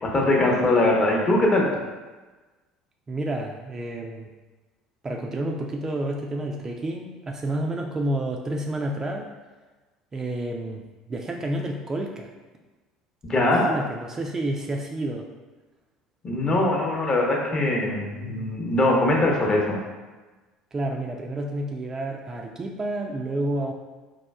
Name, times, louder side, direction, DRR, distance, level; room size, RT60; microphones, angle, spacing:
voice 1, 0.0-1.7 13.2-13.7 16.2-19.8, left 2 dB, 35° left, -1 dB, 0.8 m, -22 dB
voice 2, 3.1-4.3 5.0-9.3 10.1-10.8 11.1-12.3 13.4-15.3 20.7-23.7, right 1 dB, 25° right, 1 dB, 0.3 m, -30 dB
4.2 x 2.3 x 2.2 m, 1.2 s
hypercardioid pair, 65°, 2 cm